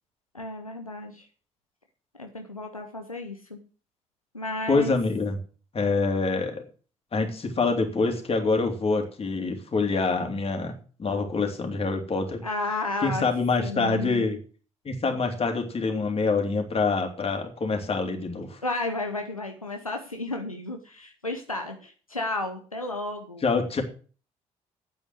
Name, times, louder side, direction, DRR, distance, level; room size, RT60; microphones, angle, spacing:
voice 1, 0.3-1.3 2.2-3.6 4.3-5.0 12.4-13.3 13.6-14.2 18.6-23.5, left 2 dB, 90° left, 4 dB, 0.8 m, -32 dB
voice 2, 4.7-5.4 5.7-6.6 7.1-10.7 11.0-12.4 13.0-14.4 14.8-18.6 23.4-23.8, left 4 dB, 35° left, 4 dB, 2.9 m, -26 dB
9.5 x 7.9 x 7.8 m, 0.40 s
figure-of-eight pair, 45°, 17 cm